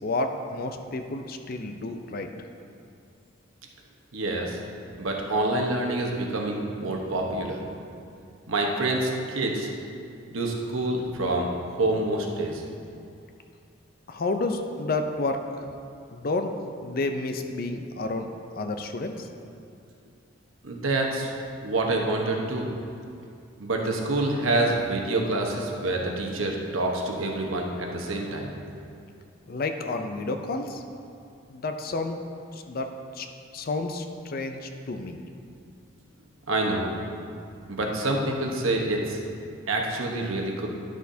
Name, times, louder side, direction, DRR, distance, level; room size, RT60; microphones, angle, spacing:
voice 1, 0.0-2.3 14.1-15.6 16.1-16.5 16.8-18.3 18.6-19.3 29.5-30.8 31.5-32.2 32.5-33.3 33.5-35.2, left 2 dB, 45° left, 6 dB, 0.5 m, -30 dB
voice 2, 4.1-4.6 5.0-7.6 8.5-9.7 10.3-12.6 20.6-21.3 21.6-22.7 23.6-28.5 36.5-36.9 37.7-39.2 39.7-40.7, right 2 dB, 80° right, 0 dB, 1.0 m, -27 dB
11.5 x 6.3 x 2.7 m, 2.5 s
head